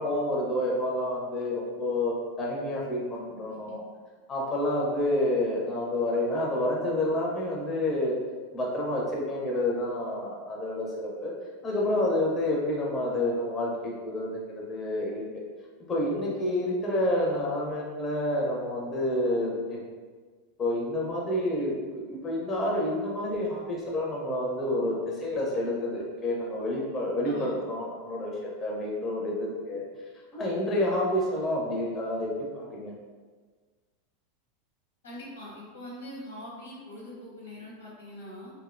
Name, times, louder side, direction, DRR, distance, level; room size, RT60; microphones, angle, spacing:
voice 1, 0.0-3.8 4.3-8.2 8.5-11.3 11.6-15.3 15.9-19.8 20.6-29.8 30.3-32.9, left 1 dB, 25° left, -3 dB, 0.5 m, -29 dB
voice 2, 35.0-38.5, left 1 dB, 90° left, -5 dB, 0.9 m, -42 dB
2.6 x 2.0 x 2.4 m, 1.5 s
hypercardioid pair, 100°, 0 cm